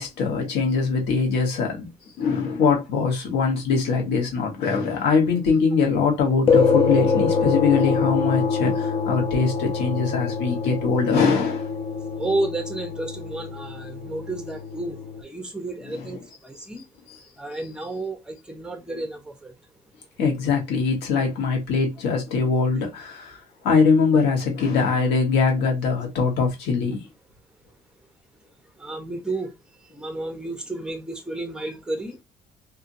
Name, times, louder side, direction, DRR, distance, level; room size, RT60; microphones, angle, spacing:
voice 1, 0.0-1.9 2.2-11.7 15.9-16.0 17.1-17.2 20.2-23.4 23.6-27.0, left 5 dB, 85° left, 1.2 m, -22 dB
sound 1, 6.5-15.2, left 5 dB, 35° left, 0.7 m, -24 dB
voice 2, 12.2-15.0 15.2-16.2 16.4-16.8 17.4-19.5 28.8-29.5 29.9-32.2, right 2 dB, 5° right, 0.8 m, -31 dB
2.7 x 2.7 x 2.6 m
cardioid pair, 110°, 17 cm